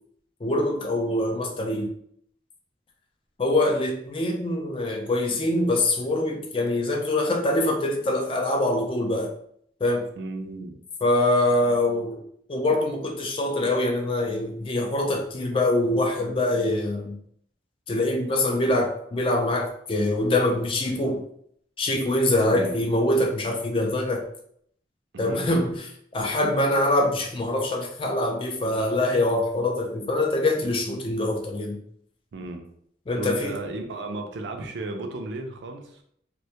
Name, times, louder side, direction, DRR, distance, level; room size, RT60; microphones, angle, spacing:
voice 1, 0.4-1.9 3.4-9.3 9.8-10.1 11.0-12.2 12.5-17.2 17.9-21.2 21.8-24.2 25.2-25.7 26.1-31.8 33.1-33.5, left 1 dB, 30° left, 1 dB, 0.3 m, -24 dB
voice 2, 10.2-10.8 22.5-22.8 25.1-25.6 32.3-32.6 33.2-36.0, right 2 dB, 80° right, 4 dB, 0.4 m, -34 dB
2.1 x 2.1 x 2.7 m, 0.67 s
head